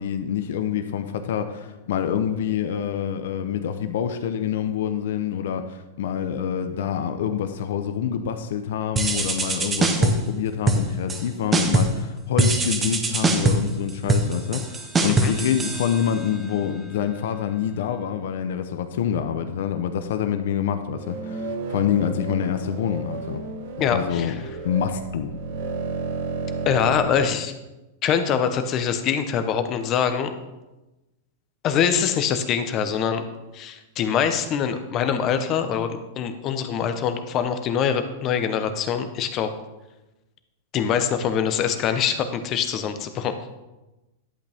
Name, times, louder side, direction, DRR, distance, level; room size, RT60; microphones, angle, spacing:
voice 1, 0.0-23.4 23.9-24.4 24.6-25.3, left 8 dB, 70° left, 8 dB, 0.8 m, -26 dB
sound 1, 9.0-10.3 10.7-11.2 11.5-12.0 12.4-16.4, right 2 dB, 15° right, 0.9 m, -22 dB
sound 2, 20.9-27.1, right 4 dB, 60° right, 1.5 m, -32 dB
voice 2, 23.8-24.4 26.7-27.5 28.0-30.3 31.6-33.2 33.5-39.5 40.7-43.3, left 7 dB, 30° left, 8 dB, 0.9 m, -24 dB
11.0 x 8.3 x 3.5 m, 1.0 s
supercardioid pair, 145°, 0 cm